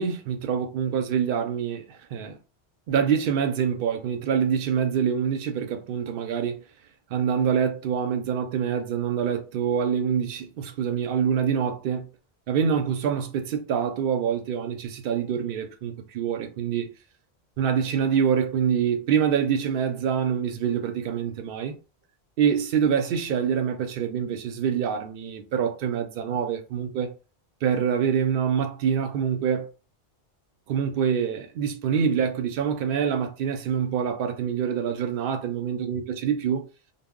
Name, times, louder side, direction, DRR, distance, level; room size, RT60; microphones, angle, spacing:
voice 1, 0.0-2.4 2.9-6.6 7.1-12.1 12.5-16.9 17.6-21.8 22.4-27.1 27.6-29.7 30.7-36.6, right 7 dB, 65° right, 0.7 m, -25 dB
2.0 x 2.0 x 3.5 m
omnidirectional pair, 1.1 m